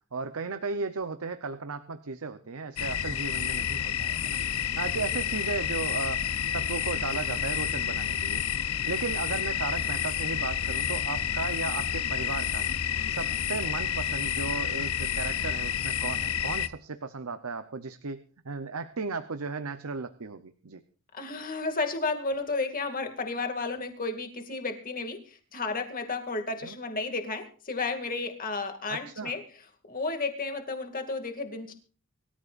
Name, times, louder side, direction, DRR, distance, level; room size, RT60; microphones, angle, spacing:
voice 1, 0.1-6.2 6.5-8.4 8.9-20.8 26.6-26.8 28.9-29.4, right 4 dB, 70° right, 10 dB, 0.8 m, -35 dB
sound 1, 2.8-16.7, left 9 dB, 70° left, 0.8 m, -30 dB
voice 2, 21.1-29.4 29.9-31.7, left 3 dB, 40° left, 5 dB, 2.3 m, -32 dB
24.5 x 13.5 x 2.5 m, 0.38 s
head